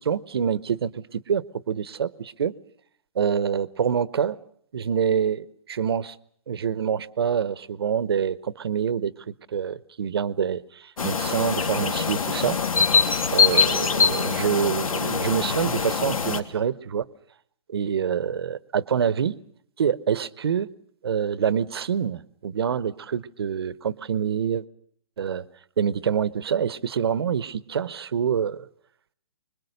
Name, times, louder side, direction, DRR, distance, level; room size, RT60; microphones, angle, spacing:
voice 1, 0.0-2.5 3.2-4.4 4.7-6.2 6.5-12.6 13.3-17.1 17.7-19.4 19.8-20.7 21.0-24.6 25.2-25.4 25.8-28.7, right 7 dB, 45° right, 0.9 m, -26 dB
sound 1, 11.0-16.4, left 5 dB, 85° left, 2.9 m, -23 dB
25.0 x 22.0 x 6.6 m
hypercardioid pair, 175°, 17 cm